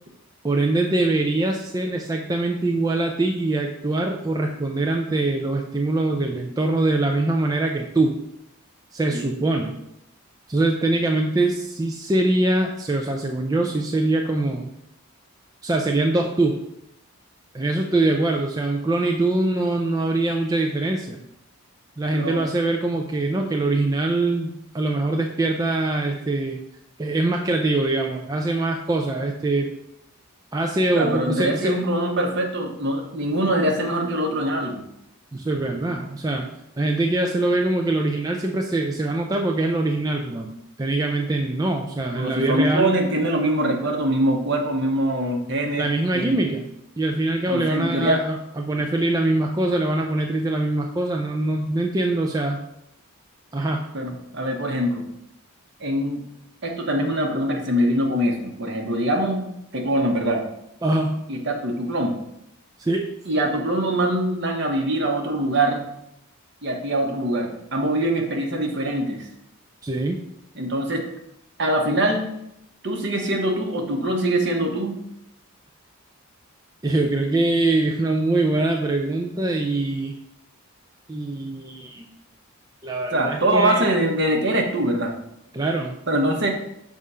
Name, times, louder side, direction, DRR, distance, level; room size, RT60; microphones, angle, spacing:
voice 1, 0.4-8.2 8.9-9.8 10.5-14.7 15.6-16.6 17.5-21.2 22.0-26.6 27.0-29.7 30.5-31.8 35.3-36.5 36.8-42.9 45.7-46.7 47.0-52.6 53.5-53.8 60.8-61.2 62.8-63.1 69.8-70.2 76.8-80.1 81.1-82.1 82.8-83.8 85.5-86.0, right 2 dB, 15° right, 1 dB, 0.4 m, -23 dB
voice 2, 22.1-22.4 30.9-34.8 42.2-46.4 47.5-48.2 53.9-55.0 55.8-56.2 56.6-59.4 59.7-60.4 61.3-62.2 63.2-65.8 66.6-69.3 70.5-71.1 71.6-72.3 72.8-75.0 83.1-85.1 86.1-86.5, right 1 dB, 55° right, 2 dB, 1.1 m, -23 dB
6.3 x 3.6 x 5.5 m, 0.80 s
head